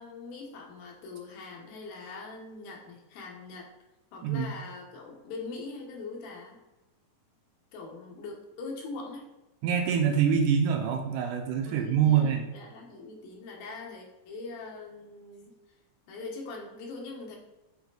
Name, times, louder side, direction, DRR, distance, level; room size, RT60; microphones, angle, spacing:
voice 1, 0.0-3.7 4.1-6.6 7.7-9.3 11.6-15.5 16.1-17.4, left 3 dB, 85° left, -1 dB, 3.1 m, -42 dB
voice 2, 9.6-12.5, right 7 dB, 75° right, 3 dB, 2.2 m, -25 dB
7.8 x 4.5 x 3.9 m, 1.0 s
omnidirectional pair, 4.1 m